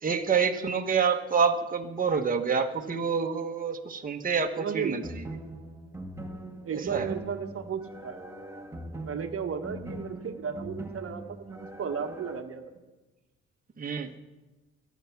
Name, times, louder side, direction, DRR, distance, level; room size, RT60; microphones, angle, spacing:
voice 1, 0.0-5.0 6.9-7.1 13.8-14.1, right 6 dB, 30° right, 3 dB, 1.3 m, -27 dB
voice 2, 4.5-5.1 6.6-8.2 9.1-12.6, right 6 dB, 50° right, 5 dB, 1.3 m, -34 dB
sound 1, 5.0-12.4, right 1 dB, 10° right, 1.5 m, -41 dB
23.0 x 9.4 x 6.0 m, 1.1 s
cardioid pair, 90°, 30 cm